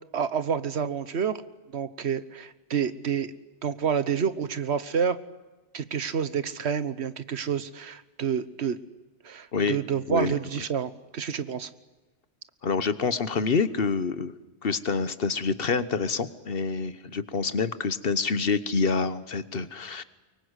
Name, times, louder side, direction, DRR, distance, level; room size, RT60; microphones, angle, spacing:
voice 1, 0.1-1.4 1.7-5.2 5.7-8.8 9.2-11.7, right 7 dB, 80° right, 14 dB, 1.3 m, -29 dB
voice 2, 12.6-14.3 14.6-20.0, left 4 dB, 60° left, 14 dB, 1.3 m, -27 dB
24.5 x 23.0 x 8.1 m, 1.2 s
omnidirectional pair, 1.1 m